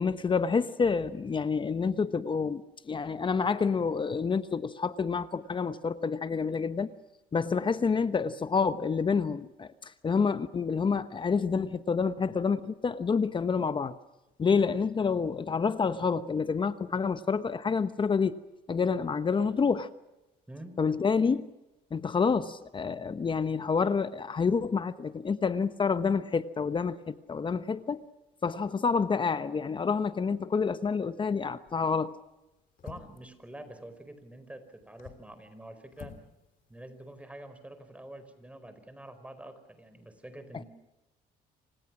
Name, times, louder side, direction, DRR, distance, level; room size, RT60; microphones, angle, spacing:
voice 1, 0.0-6.9 7.3-14.0 14.4-18.4 18.7-19.9 20.8-21.5 21.9-28.0 28.4-32.2, left 5 dB, 30° left, 1.1 m, -28 dB
voice 2, 20.5-20.8 32.8-36.2 36.7-40.6, right 1 dB, 5° right, 4.8 m, -46 dB
sound 1, 31.7-32.0 32.8-33.3 34.8-35.3 35.9-36.3 36.6-36.7, left 7 dB, 55° left, 3.3 m, -47 dB
28.5 x 25.5 x 6.2 m
cardioid pair, 110°, 17 cm